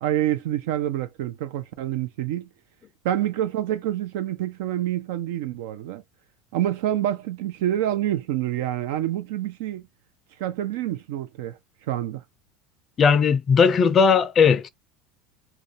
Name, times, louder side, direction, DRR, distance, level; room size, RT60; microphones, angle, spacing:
voice 1, 0.0-2.5 3.0-6.0 6.5-9.8 10.4-11.6 11.9-12.2, right 12 dB, 80° right, 0.5 m, -27 dB
voice 2, 13.0-14.7, left 6 dB, 35° left, 0.3 m, -17 dB
2.4 x 2.2 x 2.7 m
supercardioid pair, 120°, 0 cm